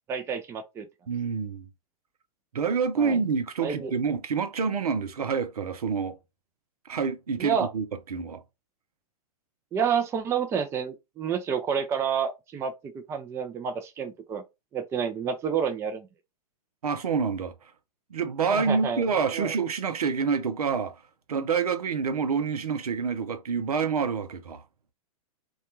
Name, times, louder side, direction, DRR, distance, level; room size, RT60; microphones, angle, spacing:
voice 1, 0.1-0.9 3.0-3.2 3.6-3.9 7.4-7.7 9.7-14.4 14.7-16.1 18.5-19.0 19.3-19.5, right 7 dB, 15° right, 0.4 m, -29 dB
voice 2, 1.1-1.7 2.5-6.2 6.9-8.4 16.8-17.5 18.1-21.0 21.3-24.6, right 5 dB, 85° right, 0.5 m, -27 dB
2.2 x 2.2 x 2.9 m
hypercardioid pair, 120°, 19 cm